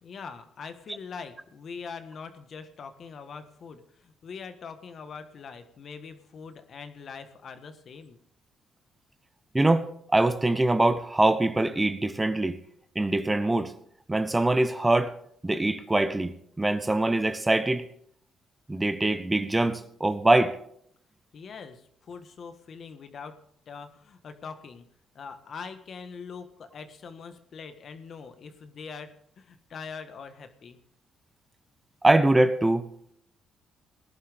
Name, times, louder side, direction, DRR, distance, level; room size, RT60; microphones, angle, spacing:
voice 1, 0.0-8.2 21.3-23.4 23.7-24.8 25.1-30.8, left 5 dB, 55° left, 9 dB, 1.5 m, -43 dB
voice 2, 9.5-12.6 12.9-13.7 14.1-15.1 15.4-17.8 18.7-20.6 32.0-32.9, right 2 dB, 15° right, 11 dB, 1.0 m, -23 dB
18.5 x 11.5 x 3.6 m, 0.66 s
cardioid pair, 90°, 0 cm